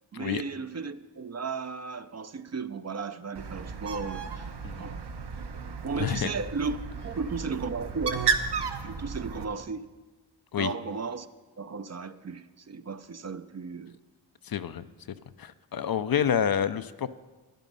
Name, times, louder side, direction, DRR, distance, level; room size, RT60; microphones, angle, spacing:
voice 1, 0.1-4.5 4.8-5.0 5.8-6.8 7.0-8.3 8.8-9.9 10.6-11.3 11.6-14.0, right 4 dB, 35° right, 11 dB, 0.6 m, -35 dB
Bird, 3.3-9.4, right 6 dB, 60° right, 1.1 m, -33 dB
voice 2, 6.0-6.3 10.5-10.7 14.4-14.8 15.4-17.1, left 8 dB, 50° left, 12 dB, 0.6 m, -28 dB
11.0 x 10.0 x 5.4 m, 1.2 s
cardioid pair, 50°, 47 cm